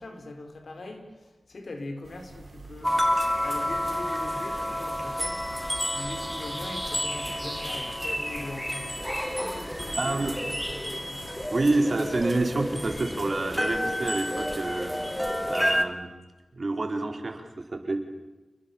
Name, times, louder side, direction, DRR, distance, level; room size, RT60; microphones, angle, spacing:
voice 1, 0.0-3.0 3.4-10.5 10.8-11.5, left 2 dB, 70° left, 6 dB, 4.4 m, -41 dB
sound 1, 2.0-10.8, right 3 dB, 75° right, 3.7 m, -48 dB
sound 2, 2.8-15.8, equal, 5° left, 2.4 m, -30 dB
voice 2, 10.0-10.3 11.5-15.0 15.4-16.1 16.5-18.1, right 2 dB, 55° right, 5 dB, 4.2 m, -28 dB
29.0 x 21.5 x 7.2 m, 1.1 s
wide cardioid pair, 60°, 0 cm